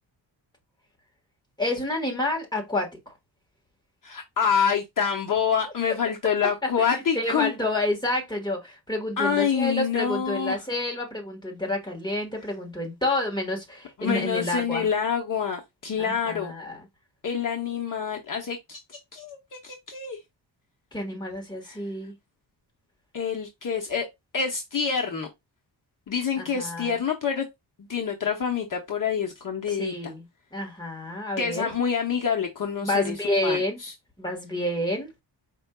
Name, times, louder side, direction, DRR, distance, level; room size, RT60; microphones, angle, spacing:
voice 1, 1.6-2.9 6.8-14.8 16.0-16.8 20.9-22.1 26.4-27.0 29.7-30.2 30.5-31.7 32.8-33.8 34.2-35.1, left 1 dB, 10° left, 1.4 m, -29 dB
voice 2, 4.0-7.5 9.2-10.6 14.0-16.5 17.2-20.2 21.6-21.8 23.1-24.1 24.3-25.3 26.1-27.5 27.8-30.1 31.4-33.9, left 7 dB, 45° left, 0.8 m, -27 dB
5.2 x 4.4 x 2.2 m
wide cardioid pair, 165°, 44 cm